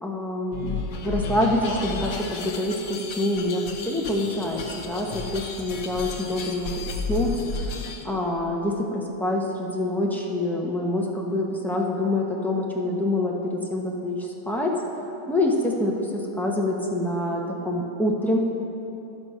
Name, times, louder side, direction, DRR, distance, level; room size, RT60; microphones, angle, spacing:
voice 1, 0.0-7.3 8.0-14.7 15.3-18.4, left 1 dB, ahead, -2 dB, 0.4 m, -26 dB
sound 1, 0.5-8.0, left 4 dB, 60° left, 1.2 m, -33 dB
13.0 x 6.1 x 5.4 m, 3.0 s
omnidirectional pair, 1.8 m